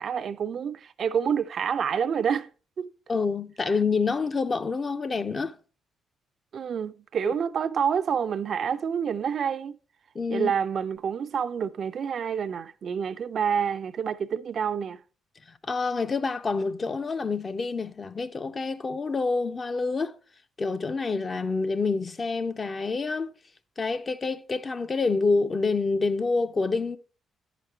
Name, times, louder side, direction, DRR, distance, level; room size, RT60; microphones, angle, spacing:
voice 1, 0.0-2.5 2.8-2.9 6.5-9.8 10.3-15.0, right 7 dB, 55° right, 0.4 m, -28 dB
voice 2, 3.1-5.6 7.3-7.4 10.1-10.5 15.6-20.2 20.6-23.3 23.8-27.0, left 4 dB, 35° left, 0.6 m, -27 dB
9.8 x 5.0 x 4.4 m
cardioid pair, 90°, 0 cm